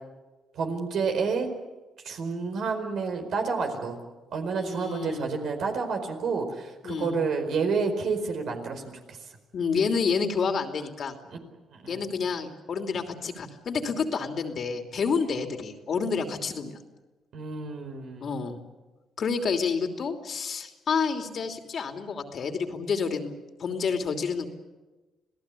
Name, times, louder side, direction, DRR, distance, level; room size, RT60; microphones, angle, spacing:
voice 1, 0.5-1.5 2.0-4.0 4.3-9.2 11.7-12.1 17.3-18.4, right 4 dB, 70° right, 5 dB, 4.7 m, -29 dB
voice 2, 4.5-5.3 6.8-7.1 9.5-11.1 11.9-16.8 18.2-18.6 19.2-23.3 23.6-24.5, left 5 dB, 55° left, 5 dB, 2.9 m, -29 dB
27.0 x 17.5 x 8.5 m, 1.2 s
cardioid pair, 90°, 0 cm